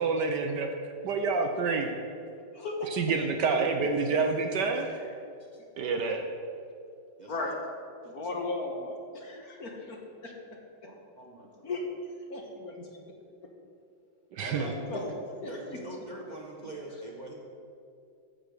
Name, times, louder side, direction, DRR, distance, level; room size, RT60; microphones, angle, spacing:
voice 1, 0.0-2.0 2.9-4.9 5.8-6.3 14.3-14.7, right 4 dB, 65° right, 4 dB, 1.2 m, -28 dB
voice 2, 2.5-3.0 3.4-3.9 5.0-5.2 7.3-7.5 8.0-10.0 11.6-11.9 12.3-12.9 14.5-15.0 15.4-15.5, left 2 dB, 50° left, 1 dB, 1.5 m, -36 dB
voice 3, 7.2-7.5 10.8-11.5 14.4-15.1 15.4-17.3, right 1 dB, 30° right, -2 dB, 1.0 m, -42 dB
14.0 x 5.1 x 6.7 m, 2.5 s
omnidirectional pair, 2.2 m